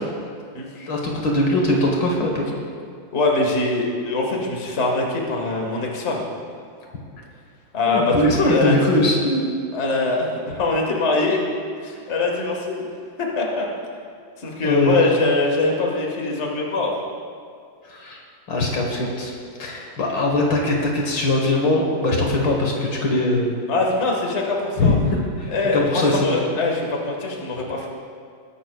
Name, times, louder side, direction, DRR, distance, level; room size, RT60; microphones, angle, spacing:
voice 1, 0.8-2.5 7.9-9.5 14.6-15.0 17.8-18.2 18.5-19.3 19.6-23.6 24.8-26.3, left 2 dB, 65° left, 0 dB, 2.0 m, -21 dB
voice 2, 3.1-6.2 7.7-9.0 9.7-11.4 11.8-12.8 13.2-13.7 14.4-17.0 23.7-25.0 25.5-27.9, left 3 dB, 35° left, -1 dB, 1.7 m, -23 dB
20.0 x 11.5 x 2.3 m, 2.2 s
omnidirectional pair, 2.2 m